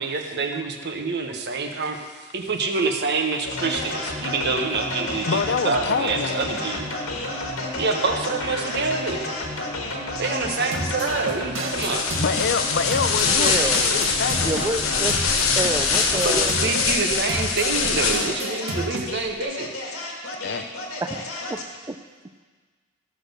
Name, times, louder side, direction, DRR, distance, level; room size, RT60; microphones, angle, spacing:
voice 1, 0.0-2.0 2.3-6.9 7.8-9.2 10.2-12.1 16.1-19.7, right 4 dB, 55° right, 4 dB, 1.2 m, -26 dB
sound 1, 3.5-21.8, left 2 dB, 90° left, 2.0 m, -31 dB
voice 2, 5.3-6.4 12.2-15.2 20.4-20.7, left 5 dB, 55° left, 10 dB, 0.6 m, -27 dB
sound 2, 10.7-12.5 12.9-14.7 15.1-16.9 17.3-19.1, right 2 dB, 70° right, 1.5 m, -32 dB
sound 3, 11.7-18.5, left 5 dB, 70° left, 1.1 m, -23 dB
voice 3, 13.2-13.8 14.4-15.2 15.6-16.5 21.0-21.2 21.5-22.0, right 2 dB, 15° right, 9 dB, 0.5 m, -28 dB
14.5 x 6.4 x 6.7 m, 1.5 s
head